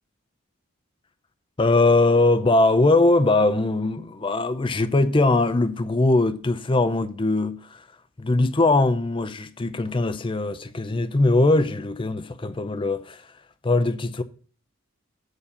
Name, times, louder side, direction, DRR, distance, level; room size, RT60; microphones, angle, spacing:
voice 1, 1.6-7.8 8.2-13.2 13.6-14.2, left 2 dB, 25° left, 0.5 m, -21 dB
8.0 x 4.2 x 6.9 m
head